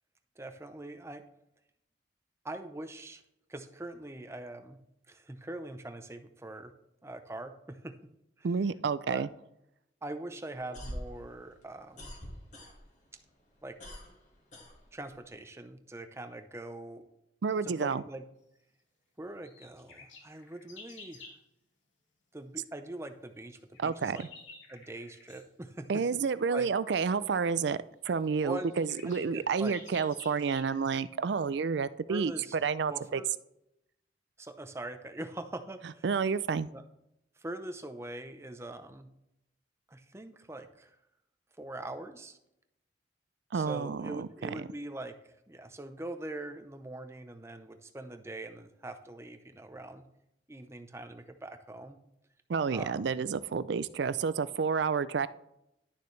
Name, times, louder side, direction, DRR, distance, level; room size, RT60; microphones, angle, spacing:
voice 1, 0.4-1.2 2.4-3.2 3.5-4.8 5.1-6.7 7.0-7.9 8.4-8.5 9.1-9.3 10.0-12.1 13.6-13.7 14.9-17.0 17.6-18.2 19.2-21.2 22.3-24.3 24.7-26.2 26.5-26.7 28.4-28.7 29.0-29.8 32.1-32.6 32.9-33.3 34.4-36.1 36.7-36.8 37.4-39.1 39.9-41.0 41.6-42.4 43.5-45.1 45.5-50.0 50.5-52.0 52.7-53.1, right 1 dB, 15° right, 7 dB, 0.6 m, -42 dB
voice 2, 8.4-9.3 17.4-18.0 23.8-24.3 25.9-27.8 28.0-33.2 36.0-36.7 43.5-44.7 52.5-55.3, right 5 dB, 65° right, 16 dB, 0.4 m, -30 dB
sound 1, 10.5-13.1 13.4-15.3, equal, 40° left, 1.7 m, -44 dB
sound 2, 19.4-21.4 23.5-25.5 27.3-27.4 28.0-28.1 28.2-31.0, left 4 dB, 85° left, 2.3 m, -52 dB
11.5 x 6.7 x 3.2 m, 0.83 s
head